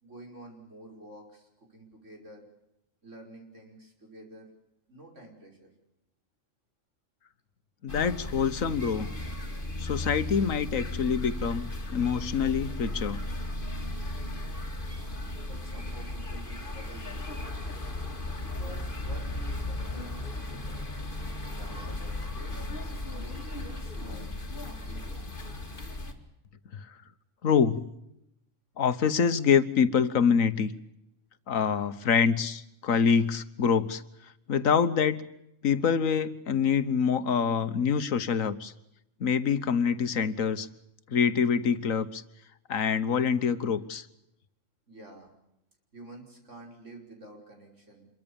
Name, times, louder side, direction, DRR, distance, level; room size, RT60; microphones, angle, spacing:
voice 1, 0.0-2.4 3.0-4.5 4.9-5.7 15.4-17.6 18.4-22.6 23.1-24.3 24.6-25.3 44.9-45.3 45.9-48.1, right 1 dB, 65° right, 1 dB, 5.7 m, -49 dB
voice 2, 7.8-9.1 9.8-13.2 26.7-26.9 27.4-27.8 28.8-30.7 31.5-34.0 34.5-35.3 35.6-38.7 39.2-40.7 41.1-42.2 42.7-44.1, left 6 dB, 80° left, 12 dB, 1.6 m, -25 dB
sound 1, 7.9-26.1, left 2 dB, 40° left, 2.8 m, -36 dB
27.0 x 23.0 x 7.1 m, 0.81 s
omnidirectional pair, 1.4 m